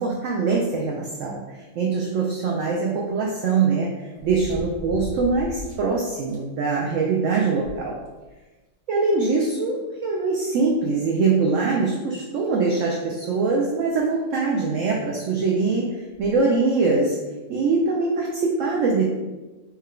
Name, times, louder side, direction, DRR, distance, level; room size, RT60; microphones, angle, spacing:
voice 1, 0.0-7.9 8.9-17.2 17.5-19.0, right 4 dB, 70° right, -1 dB, 0.7 m, -23 dB
sound 1, 2.2-2.3 4.2-5.9 6.3-6.4 6.8-6.9 7.3-8.4 9.4-9.5 11.0-11.1 11.6-11.7 12.4-12.7 14.0-14.1 14.3-14.4 16.1-16.4 17.1-17.2, left 1 dB, 20° left, 0.7 m, -38 dB
4.4 x 2.2 x 3.7 m, 1.2 s
omnidirectional pair, 1.7 m